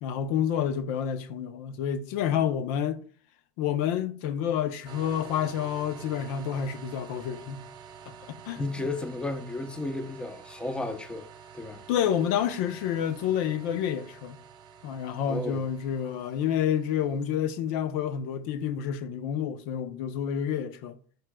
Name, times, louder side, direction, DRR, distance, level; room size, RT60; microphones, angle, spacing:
voice 1, 0.0-3.0 3.6-7.7 8.1-8.6 11.9-14.4 14.8-21.0, left 9 dB, 65° left, 0.7 m, -29 dB
sound 1, 4.8-17.4, right 7 dB, 45° right, 0.7 m, -49 dB
voice 2, 8.6-11.3 11.5-11.8 15.3-15.6, left 2 dB, 10° left, 0.8 m, -33 dB
11.0 x 4.7 x 2.3 m
supercardioid pair, 115°, 11 cm